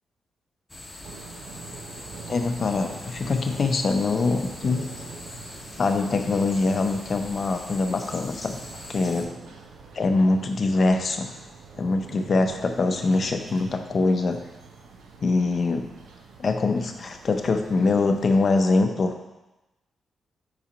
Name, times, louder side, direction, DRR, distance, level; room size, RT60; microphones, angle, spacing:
sound 1, 0.7-9.2, left 1 dB, 20° left, 0.9 m, -42 dB
sound 2, 1.0-18.5, right 4 dB, 90° right, 0.7 m, -45 dB
voice 1, 2.3-4.8 5.8-8.6 8.9-9.3 9.9-11.3 11.8-14.4 15.2-15.9 16.4-19.1, left 3 dB, 45° left, 5 dB, 0.6 m, -23 dB
4.8 x 4.3 x 5.1 m, 1.0 s
cardioid pair, 120°, 0 cm